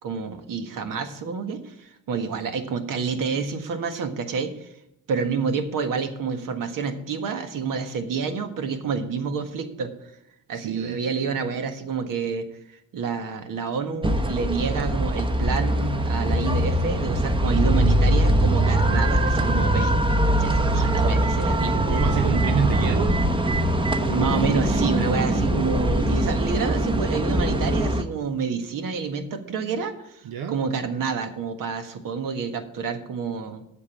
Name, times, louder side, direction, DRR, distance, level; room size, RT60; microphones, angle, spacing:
voice 1, 0.0-4.7 5.1-10.1 10.5-12.5 12.9-19.9 20.4-21.7 24.1-33.6, right 5 dB, 65° right, 8 dB, 1.6 m, -28 dB
voice 2, 10.5-11.0 21.9-23.2 30.2-30.6, right 8 dB, 90° right, 7 dB, 0.9 m, -27 dB
sound 1, 14.0-28.0, right 1 dB, 15° right, 0.9 m, -22 dB
8.5 x 6.9 x 8.3 m, 0.82 s
cardioid pair, 105°, 34 cm